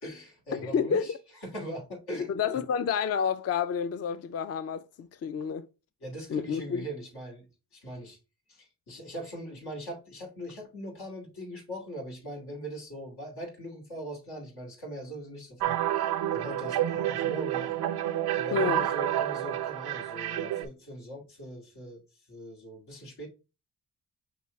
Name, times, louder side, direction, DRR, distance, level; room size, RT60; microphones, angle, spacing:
voice 1, 0.0-1.1 1.4-2.6 6.0-8.2 8.5-17.9 18.3-23.3, equal, 85° left, 2.2 m, -41 dB
voice 2, 0.6-1.1 2.3-5.7 6.3-6.9 18.5-18.9, left 6 dB, 40° left, 0.4 m, -29 dB
sound 1, 15.6-20.7, right 12 dB, 85° right, 0.5 m, -29 dB
5.9 x 2.8 x 3.1 m
cardioid pair, 55°, 38 cm